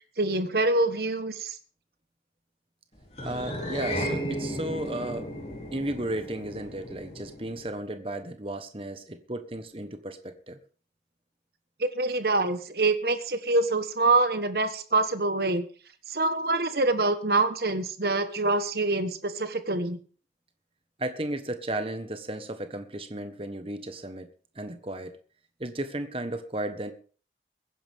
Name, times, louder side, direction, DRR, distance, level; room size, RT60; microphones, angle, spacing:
voice 1, 0.0-1.6 11.8-15.6 16.1-20.0, right 2 dB, 60° right, 10 dB, 1.4 m, -25 dB
sound 1, 3.1-7.7, equal, 35° left, 3.6 m, -34 dB
voice 2, 3.2-5.3 5.7-10.6 21.0-24.3 24.5-25.2 25.6-26.9, right 1 dB, 30° right, 8 dB, 1.3 m, -34 dB
22.5 x 10.0 x 3.6 m, 0.40 s
head